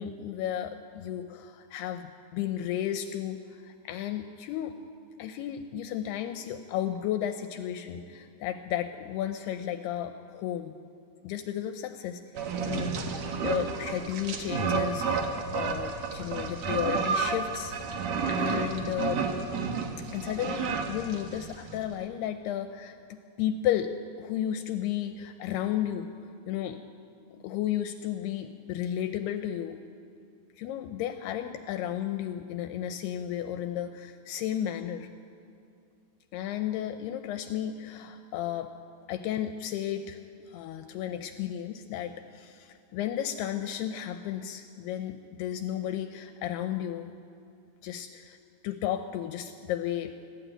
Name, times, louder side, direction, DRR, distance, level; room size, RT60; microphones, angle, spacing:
voice 1, 0.0-4.8 5.2-10.7 11.2-17.8 18.1-19.2 20.1-23.0 23.4-26.8 27.3-29.8 30.6-35.1 36.3-38.7 39.1-40.2 40.5-47.1 47.8-48.4 48.6-50.2, left 11 dB, 80° left, 8 dB, 2.5 m, -33 dB
sound 1, 12.3-21.8, right 5 dB, 70° right, 1.6 m, -31 dB
20.0 x 14.5 x 9.0 m, 2.5 s
omnidirectional pair, 5.0 m